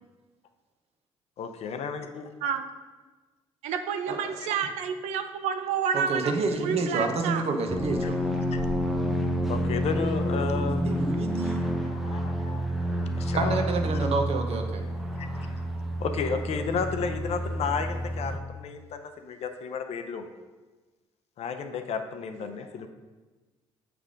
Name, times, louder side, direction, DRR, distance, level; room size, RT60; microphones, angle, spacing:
voice 1, 1.4-2.3 8.3-8.6 9.5-10.9 11.9-12.7 13.2-13.6 15.2-15.3 16.0-20.3 21.4-22.9, left 5 dB, 60° left, 8 dB, 0.6 m, -32 dB
voice 2, 3.6-6.3 6.6-7.4 22.4-22.6, right 7 dB, 75° right, 8 dB, 0.5 m, -29 dB
voice 3, 5.9-8.2 10.7-11.6 13.3-14.6, right 3 dB, 55° right, 4 dB, 0.9 m, -28 dB
sound 1, 7.7-18.4, equal, ahead, 0.8 m, -29 dB
6.9 x 3.4 x 5.1 m, 1.3 s
supercardioid pair, 65°, 12 cm